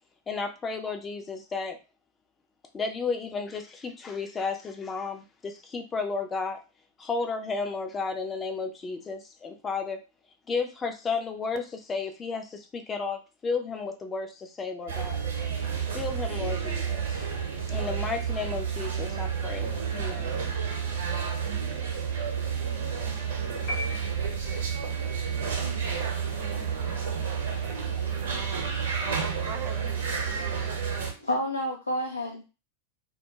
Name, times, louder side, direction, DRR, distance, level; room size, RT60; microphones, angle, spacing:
voice 1, 0.3-1.8 2.7-6.6 7.0-10.0 10.5-15.2 15.9-17.2 17.7-20.3, left 4 dB, 20° left, 5 dB, 0.4 m, -33 dB
sound 1, 14.9-31.1, right 7 dB, 60° right, 0.8 m, -30 dB
sound 2, 23.7-24.9, left 1 dB, 45° left, 0.8 m, -37 dB
voice 2, 28.0-28.8 29.2-31.1, right 6 dB, 35° right, 6 dB, 0.4 m, -44 dB
voice 3, 31.2-32.4, left 1 dB, 80° left, 1 dB, 0.3 m, -30 dB
2.3 x 2.1 x 2.8 m, 0.30 s
figure-of-eight pair, 90°, 0 cm